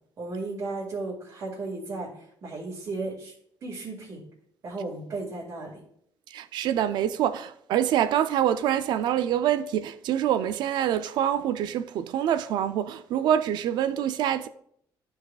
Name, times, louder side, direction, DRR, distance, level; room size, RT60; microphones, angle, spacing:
voice 1, 0.2-2.1 2.4-3.3 3.6-4.2 4.6-5.8, right 3 dB, 55° right, 2.2 m, -34 dB
voice 2, 6.3-14.5, right 10 dB, 80° right, 0.4 m, -25 dB
12.5 x 4.8 x 2.4 m
cardioid pair, 115°, 7 cm